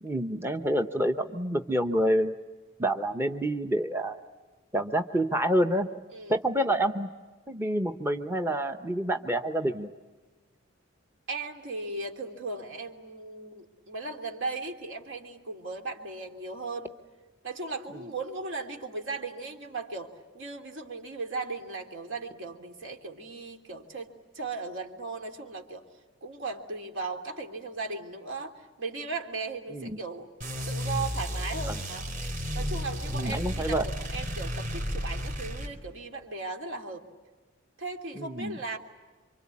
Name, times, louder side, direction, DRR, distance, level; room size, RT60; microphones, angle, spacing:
voice 1, 0.0-2.3 2.8-4.2 4.7-5.9 6.3-7.1 7.5-9.9 29.7-30.0 31.7-31.8 33.1-33.8 38.2-38.6, right 1 dB, 10° right, 6 dB, 0.9 m, -27 dB
voice 2, 11.3-16.9 17.4-25.8 26.2-30.3 30.7-32.0 32.5-37.0 37.8-38.8, right 3 dB, 65° right, 4 dB, 3.2 m, -37 dB
sound 1, 30.4-35.7, equal, 45° right, 3.6 m, -33 dB
28.0 x 25.0 x 8.5 m, 1.3 s
head